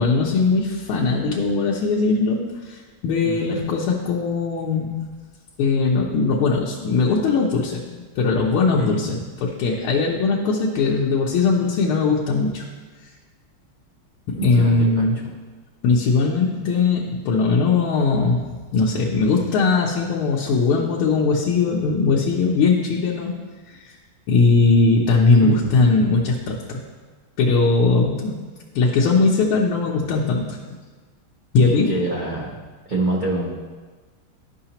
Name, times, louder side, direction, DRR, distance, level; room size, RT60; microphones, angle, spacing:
voice 1, 0.0-5.0 5.6-12.6 14.3-15.2 15.8-18.5 18.7-23.4 23.7-23.9 24.3-26.8 27.4-28.5 28.7-30.6 31.5-32.0, left 4 dB, 90° left, -3 dB, 1.6 m, -20 dB
voice 2, 3.2-3.7 8.8-9.1 14.4-15.0 25.4-25.5 25.8-25.9 31.9-32.6 32.9-33.5, right 2 dB, 70° right, -5 dB, 0.4 m, -26 dB
11.5 x 5.6 x 2.9 m, 1.4 s
omnidirectional pair, 2.3 m